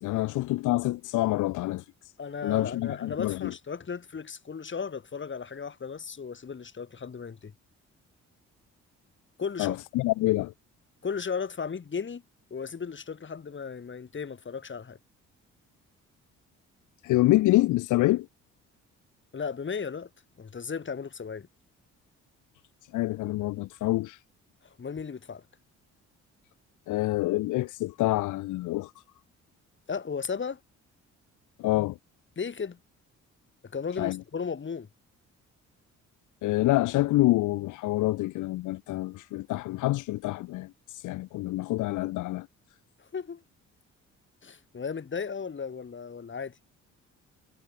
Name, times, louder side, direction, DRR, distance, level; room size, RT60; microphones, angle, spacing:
voice 1, 0.0-1.8 2.4-3.5 9.6-10.5 17.0-18.3 22.9-24.2 26.9-28.9 31.6-32.0 34.0-34.2 36.4-42.5, left 18 dB, 80° left, 0.6 m, -27 dB
voice 2, 2.2-7.5 9.4-9.8 11.0-12.2 12.5-15.0 19.3-20.1 20.4-21.5 24.6-25.4 29.9-30.6 32.4-32.8 33.6-34.9 43.0-43.4 44.4-46.6, left 6 dB, 40° left, 6.3 m, -35 dB
cardioid pair, 90°, 30 cm